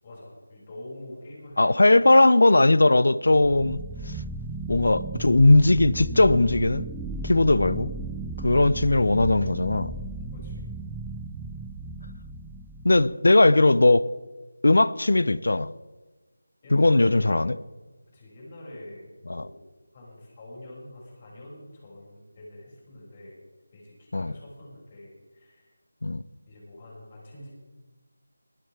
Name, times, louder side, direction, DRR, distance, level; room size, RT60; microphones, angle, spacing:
voice 1, 0.0-2.0 10.3-10.6 16.6-17.4 18.1-19.6 19.9-23.4 23.7-25.8 26.5-27.5, left 1 dB, 25° left, 6.4 m, -45 dB
voice 2, 1.6-3.8 4.1-4.2 4.7-6.9 7.2-7.9 8.4-9.9 12.8-14.1 14.6-15.7 16.7-17.6 19.3-19.5 24.1-24.3 26.0-26.2, left 2 dB, 70° left, 0.7 m, -19 dB
sound 1, 3.3-13.1, right 2 dB, 5° right, 0.4 m, -35 dB
20.5 x 14.5 x 3.5 m
figure-of-eight pair, 170°, 0 cm